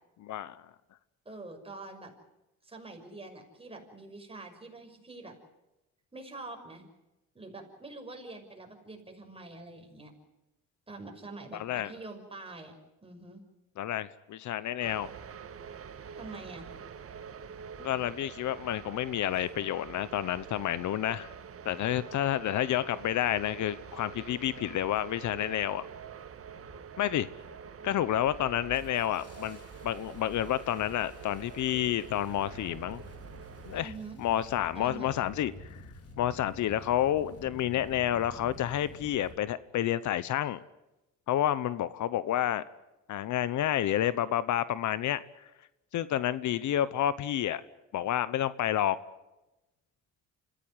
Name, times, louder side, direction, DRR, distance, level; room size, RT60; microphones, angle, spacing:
voice 1, 0.2-0.7 11.5-11.9 13.8-15.1 17.8-21.3 21.6-25.9 27.0-27.3 27.8-33.0 33.6-33.9 34.2-35.8 36.2-40.6 41.3-42.6 43.1-45.2 45.9-47.6 47.9-49.0, left 12 dB, 75° left, 16 dB, 1.0 m, -30 dB
voice 2, 1.2-2.1 2.6-5.4 6.1-6.8 7.3-10.1 10.9-12.7 13.0-13.4 16.1-16.7 33.7-34.2 34.7-35.3, right 3 dB, 20° right, 3 dB, 6.0 m, -45 dB
sound 1, 14.8-33.8, right 7 dB, 50° right, 1.5 m, -46 dB
Engine starting, 23.0-23.1 23.8-24.1 24.8-25.2 25.5-26.0 26.5-27.0 27.4-27.6 27.9-39.3, left 2 dB, 50° left, 5.2 m, -50 dB
26.5 x 15.5 x 9.6 m, 1.0 s
cardioid pair, 90°, 30 cm